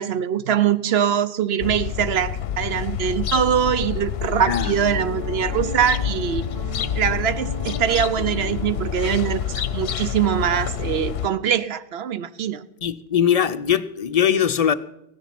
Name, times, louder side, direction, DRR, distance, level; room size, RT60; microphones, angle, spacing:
voice 1, 0.0-6.4 7.0-12.6, right 9 dB, 70° right, 0.9 m, -23 dB
sound 1, 1.6-11.3, left 9 dB, 65° left, 0.9 m, -28 dB
Piano, 4.7-10.0, right 1 dB, 50° right, 1.6 m, -38 dB
voice 2, 12.8-14.7, left 9 dB, 45° left, 0.5 m, -20 dB
15.5 x 10.0 x 5.9 m
omnidirectional pair, 1.1 m